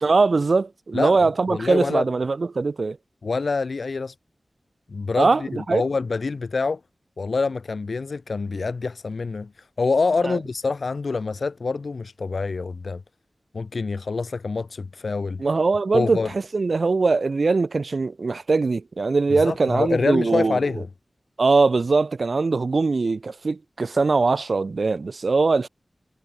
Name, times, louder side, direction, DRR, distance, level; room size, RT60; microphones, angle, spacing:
voice 1, 0.0-3.0 5.2-5.4 5.7-5.8 10.2-10.4 15.4-20.6 21.4-25.7, right 3 dB, 65° right, 1.4 m, -21 dB
voice 2, 0.9-2.1 3.2-4.1 4.9-6.8 7.2-9.5 9.8-13.0 13.5-15.4 15.9-16.3 19.4-20.9, left 4 dB, 75° left, 2.1 m, -26 dB
wide cardioid pair, 85°, 0 cm